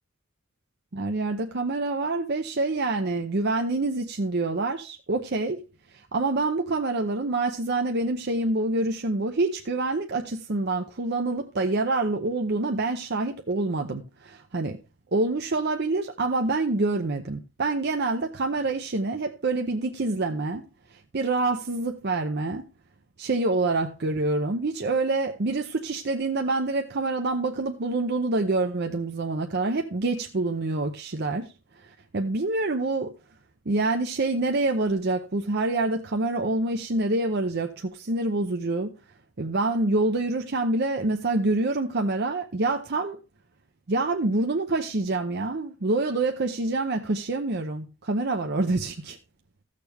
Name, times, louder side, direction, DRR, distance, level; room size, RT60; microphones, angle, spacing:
voice 1, 0.9-5.6 5.9-14.8 15.1-20.6 21.1-22.7 23.2-33.1 33.7-38.9 39.4-43.2 43.9-49.2, right 2 dB, 55° right, 0.8 m, -26 dB
15.5 x 6.7 x 3.5 m
head